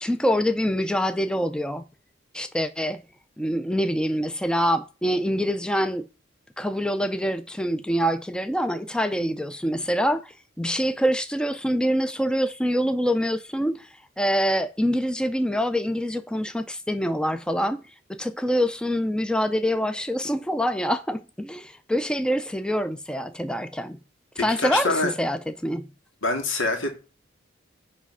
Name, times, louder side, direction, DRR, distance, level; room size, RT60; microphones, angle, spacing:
voice 1, 0.0-1.8 2.3-3.0 3.4-6.1 6.6-13.9 14.2-17.8 18.2-24.0 24.4-25.9, equal, 5° left, 0.4 m, -25 dB
voice 2, 24.6-25.1 26.2-27.0, left 3 dB, 90° left, 2.0 m, -25 dB
9.7 x 3.4 x 5.5 m
head